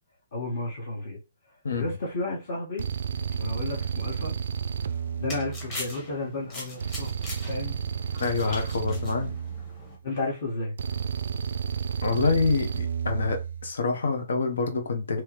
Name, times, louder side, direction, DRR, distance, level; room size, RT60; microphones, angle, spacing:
voice 1, 0.3-1.2 1.7-2.8 3.3-4.3 5.2-7.1 7.4-7.8 8.1-8.6 10.0-10.7, left 2 dB, 45° left, 1.5 m, -33 dB
sound 1, 1.7-2.0 2.8-6.1 6.8-10.1 10.8-13.7, right 7 dB, 60° right, 0.3 m, -32 dB
sound 2, 4.8-10.0, left 2 dB, 15° left, 1.2 m, -42 dB
voice 2, 8.2-9.3 12.0-15.2, left 4 dB, 85° left, 1.0 m, -26 dB
3.4 x 3.0 x 3.1 m
hypercardioid pair, 175°, 0 cm